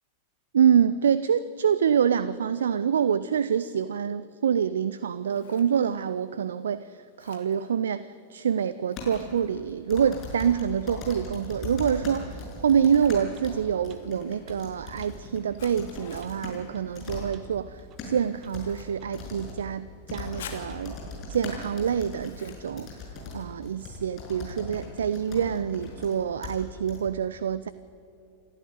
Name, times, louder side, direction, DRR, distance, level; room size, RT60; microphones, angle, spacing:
voice 1, 0.5-21.0 21.3-22.9 23.3-27.7, right 8 dB, 65° right, 16 dB, 0.5 m, -26 dB
Scissors, 4.9-23.7, left 7 dB, 60° left, 2.8 m, -53 dB
sound 1, 9.0-9.2 9.9-16.6 16.9-17.3 17.7-18.1 18.5-18.7 19.1-19.5 20.1-26.1 26.4-26.5 26.9-27.0, left 3 dB, 35° left, 6.3 m, -39 dB
sound 2, 12.2-12.3 12.8-13.0 13.4-13.5 13.9-14.0 14.5-14.6 15.0-15.1 15.7-15.8 16.2-16.4 16.7-16.9 17.3-17.5 17.9-18.0 18.4-18.6 19.0-19.2 19.6-19.7 20.1-20.4 20.7-20.8 21.3-21.4, right 8 dB, 35° right, 1.4 m, -52 dB
28.0 x 12.5 x 9.4 m, 2.6 s
figure-of-eight pair, 90°, 0 cm